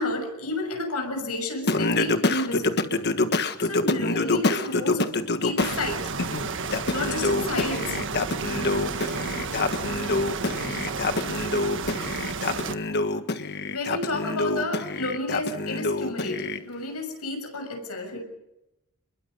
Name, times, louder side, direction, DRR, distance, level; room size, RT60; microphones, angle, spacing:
voice 1, 0.0-2.9 3.6-5.1 5.4-6.1 6.9-8.0 13.7-18.2, left 2 dB, 80° left, 4 dB, 6.6 m, -31 dB
Singing, 1.7-5.8 6.2-16.6, left 2 dB, 50° left, 1.5 m, -26 dB
sound 1, 5.6-12.7, right 4 dB, 55° right, 1.5 m, -32 dB
28.5 x 22.0 x 5.4 m, 0.90 s
head